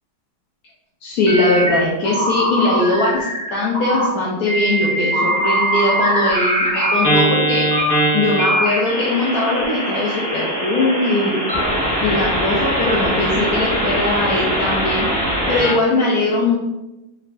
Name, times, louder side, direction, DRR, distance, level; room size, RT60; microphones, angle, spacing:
voice 1, 1.0-7.7 8.1-11.4 12.0-15.1 15.5-16.6, left 2 dB, 70° left, -5 dB, 0.9 m, -20 dB
sound 1, 1.3-1.8 2.0-3.5 3.7-4.1 4.5-15.7, right 1 dB, 10° left, 1.2 m, -21 dB
3.2 x 3.1 x 2.5 m, 1.0 s
omnidirectional pair, 2.0 m